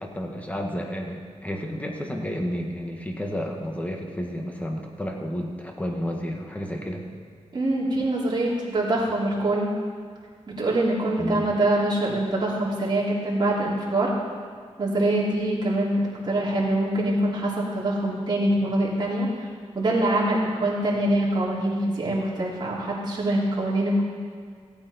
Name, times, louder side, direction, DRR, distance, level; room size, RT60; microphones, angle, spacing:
voice 1, 0.0-7.0 11.2-11.5, equal, 10° left, 1 dB, 1.7 m, -31 dB
voice 2, 7.5-9.7 10.5-14.1 14.8-19.5 19.7-24.0, right 1 dB, 40° right, -5 dB, 3.2 m, -24 dB
15.5 x 8.7 x 4.4 m, 2.1 s
cardioid pair, 90°, 12 cm